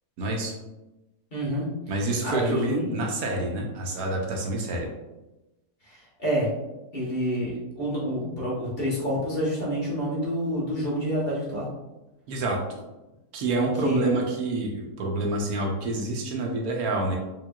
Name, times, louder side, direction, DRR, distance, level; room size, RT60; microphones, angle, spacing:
voice 1, 0.2-0.5 1.9-4.9 12.3-12.6 13.3-17.2, right 2 dB, 70° right, 0 dB, 1.1 m, -27 dB
voice 2, 1.3-1.7 2.0-2.9 5.8-6.5 6.9-11.7 13.8-14.2, equal, 40° left, -6 dB, 1.2 m, -28 dB
4.6 x 2.9 x 2.3 m, 1.0 s
omnidirectional pair, 1.6 m